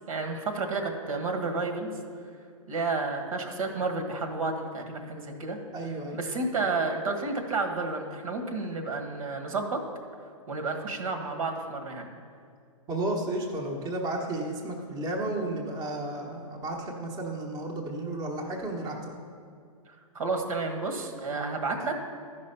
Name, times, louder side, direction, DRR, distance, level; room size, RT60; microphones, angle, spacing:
voice 1, 0.1-1.9 2.7-5.6 6.1-9.8 10.5-12.1 19.9-22.1, right 3 dB, 75° right, 4 dB, 1.7 m, -31 dB
voice 2, 5.7-6.2 12.9-19.2, right 2 dB, 20° right, 0 dB, 1.0 m, -33 dB
13.5 x 5.4 x 5.6 m, 2.3 s
hypercardioid pair, 150°, 18 cm